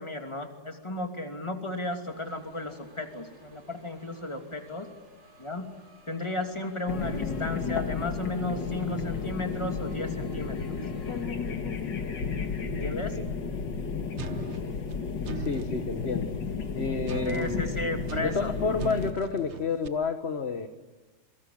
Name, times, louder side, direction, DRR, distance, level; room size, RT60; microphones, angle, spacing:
voice 1, 0.0-4.9 5.4-5.7 6.1-10.8 12.7-13.2 17.2-18.5, left 2 dB, 15° left, 4 dB, 2.8 m, -34 dB
sound 1, 2.0-11.3, right 1 dB, 75° right, 5.7 m, -56 dB
sound 2, 6.9-19.1, left 5 dB, 60° left, 2.4 m, -33 dB
voice 2, 12.8-13.3 15.3-16.3 16.7-17.9 18.2-20.7, left 4 dB, 35° left, 7 dB, 1.3 m, -30 dB
sound 3, 14.2-15.8 17.1-19.9, right 8 dB, 45° right, 1.0 m, -40 dB
27.5 x 24.0 x 8.6 m, 1.2 s
omnidirectional pair, 2.3 m